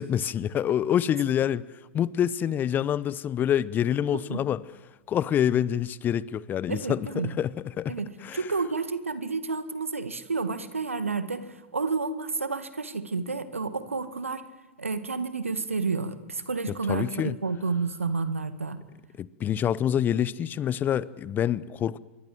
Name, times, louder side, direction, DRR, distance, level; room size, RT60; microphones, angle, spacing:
voice 1, 0.0-1.6 1.9-4.6 5.1-8.0 8.2-8.4 16.7-17.4 19.2-22.0, left 10 dB, 25° left, 0.9 m, -26 dB
voice 2, 6.7-7.3 7.9-8.1 8.3-14.4 14.8-18.8, right 4 dB, 90° right, 1.9 m, -30 dB
27.0 x 23.0 x 7.8 m
figure-of-eight pair, 100°, 7 cm